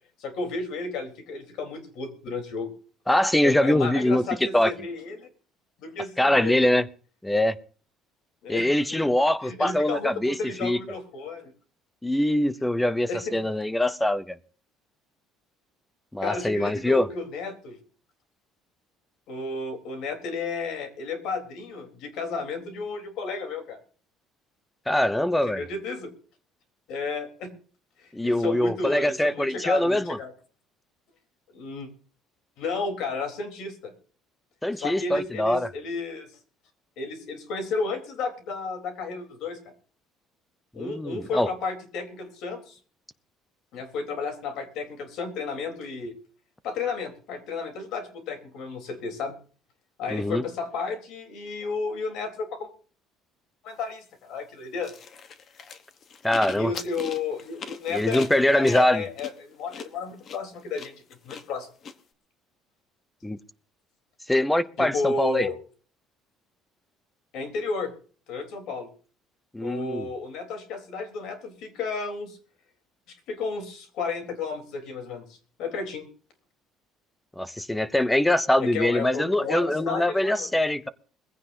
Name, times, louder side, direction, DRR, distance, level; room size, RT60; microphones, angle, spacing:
voice 1, 0.2-2.7 3.4-5.3 5.8-6.6 8.4-9.0 9.4-11.5 13.1-13.2 16.2-17.8 19.3-23.8 25.5-26.1 26.9-27.5 28.0-30.3 31.5-31.9 32.6-33.9 34.8-36.3 37.0-39.7 40.7-42.8 43.7-46.1 46.6-49.4 50.0-52.7 53.6-54.9 56.5-58.2 58.5-60.9 61.2-61.7 64.8-65.5 67.3-67.9 68.3-68.9 69.6-72.4 73.1-75.2 75.6-76.1 78.6-80.5, left 4 dB, 60° left, 6 dB, 3.6 m, -32 dB
voice 2, 3.1-4.7 6.2-6.9 7.2-7.6 8.5-10.8 12.0-14.4 16.1-17.1 24.9-25.6 28.1-30.2 34.6-35.7 40.8-41.5 50.1-50.4 56.2-56.7 57.9-59.0 63.2-63.4 64.3-65.5 69.5-70.1 77.4-80.9, left 1 dB, 5° left, 15 dB, 0.6 m, -23 dB
sound 1, 54.8-61.9, left 6 dB, 35° left, 1.0 m, -41 dB
21.5 x 15.5 x 2.7 m, 0.41 s
cardioid pair, 175°, 0 cm